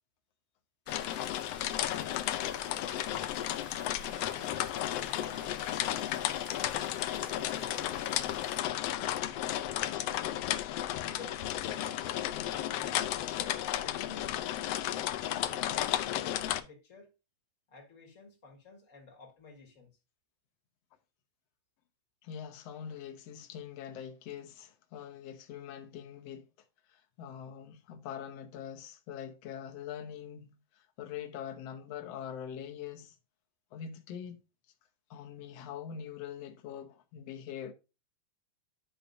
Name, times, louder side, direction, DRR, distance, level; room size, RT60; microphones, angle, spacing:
sound 1, 0.9-16.6, left 13 dB, 90° left, 1.4 m, -33 dB
sound 2, 0.9-8.6, equal, 5° right, 0.9 m, -52 dB
voice 1, 4.7-6.9 7.3-8.6 9.0-10.3 10.9-14.3 14.7-17.1 17.7-19.9, left 4 dB, 30° left, 1.7 m, -52 dB
voice 2, 22.2-26.5 26.9-33.2 33.7-34.4 35.1-37.7, left 9 dB, 65° left, 1.9 m, -43 dB
11.5 x 5.7 x 2.6 m
omnidirectional pair, 3.4 m